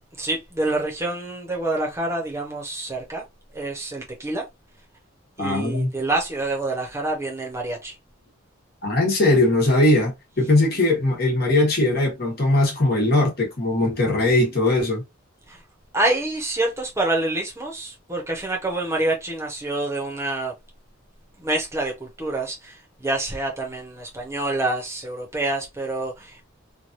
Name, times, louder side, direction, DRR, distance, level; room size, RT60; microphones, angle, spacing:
voice 1, 0.2-3.2 3.5-4.4 5.4-7.9 15.5-15.6 15.9-20.5 21.4-26.4, right 2 dB, 15° right, 1.0 m, -27 dB
voice 2, 5.4-5.9 8.8-15.0, left 2 dB, 45° left, 1.2 m, -20 dB
3.1 x 2.5 x 2.6 m
head